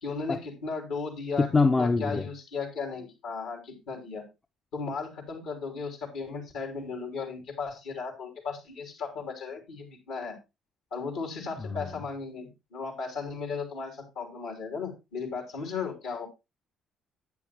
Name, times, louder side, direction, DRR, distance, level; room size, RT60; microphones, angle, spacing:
voice 1, 0.0-1.5 1.8-4.2 4.7-10.4 10.9-16.3, left 5 dB, 70° left, 3.3 m, -36 dB
voice 2, 1.4-2.3 11.6-12.0, left 3 dB, 30° left, 0.7 m, -25 dB
10.5 x 8.9 x 2.9 m
hypercardioid pair, 50°, 0 cm